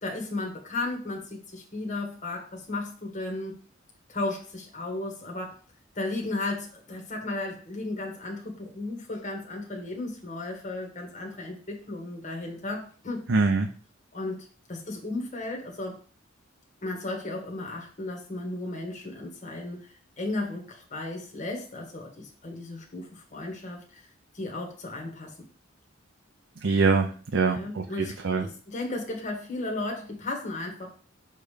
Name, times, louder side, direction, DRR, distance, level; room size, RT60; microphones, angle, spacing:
voice 1, 0.0-3.5 4.1-5.6 5.9-13.2 14.1-16.0 16.8-24.1 24.3-25.3 27.5-30.9, left 2 dB, 40° left, 0 dB, 1.5 m, -35 dB
voice 2, 13.3-13.7 26.6-28.5, right 4 dB, 70° right, 4 dB, 0.6 m, -24 dB
6.5 x 3.3 x 5.0 m, 0.40 s
head